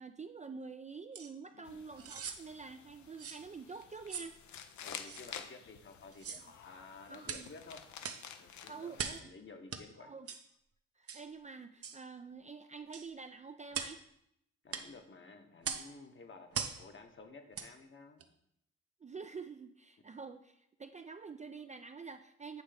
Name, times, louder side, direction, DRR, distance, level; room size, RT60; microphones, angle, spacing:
voice 1, 0.0-4.4 7.1-7.5 8.7-9.3 10.0-10.3 11.0-14.0 19.0-22.6, right 5 dB, 25° right, 8 dB, 0.3 m, -47 dB
sound 1, 1.1-1.3 2.0-2.4 3.2-3.4 4.1-4.3 5.1-5.2 6.1-6.5 7.2-7.5 8.0-8.3 9.0-9.3 9.7-9.8 10.3-10.4 11.1-11.3 11.8-12.0 12.9-13.1 13.7-14.0 14.7-14.9 15.6-15.9 16.5-16.8 17.5-17.7 18.2-18.3, right 6 dB, 55° right, 0.7 m, -40 dB
sound 2, 1.6-9.2, left 8 dB, 75° left, 0.6 m, -51 dB
voice 2, 4.8-7.8 8.3-10.1 14.6-18.3, left 3 dB, 45° left, 6 dB, 1.0 m, -53 dB
8.1 x 3.1 x 5.0 m, 0.77 s
cardioid pair, 65°, 29 cm